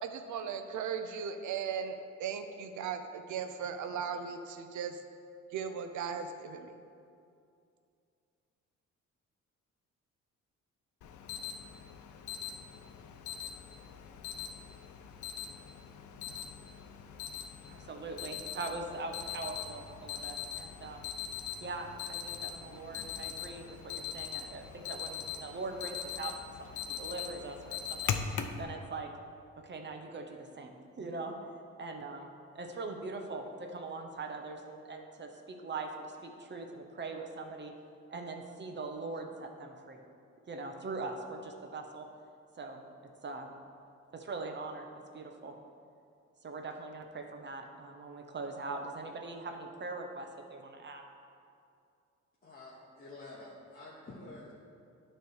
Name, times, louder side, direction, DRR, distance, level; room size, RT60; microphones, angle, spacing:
voice 1, 0.0-5.0 5.5-6.7, right 7 dB, 75° right, 8 dB, 0.7 m, -37 dB
Alarm, 11.0-28.6, left 8 dB, 75° left, 0.6 m, -41 dB
voice 2, 17.7-21.0 21.6-28.1 28.6-29.1 29.6-31.3 31.8-37.7 38.1-40.0 40.5-42.1 42.6-42.8 43.2-43.6 44.1-45.6 46.4-51.0, right 3 dB, 35° right, 4 dB, 0.8 m, -42 dB
voice 3, 52.4-54.6, left 2 dB, 30° left, -6 dB, 1.2 m, -49 dB
9.4 x 3.3 x 6.2 m, 2.5 s
cardioid pair, 90°, 30 cm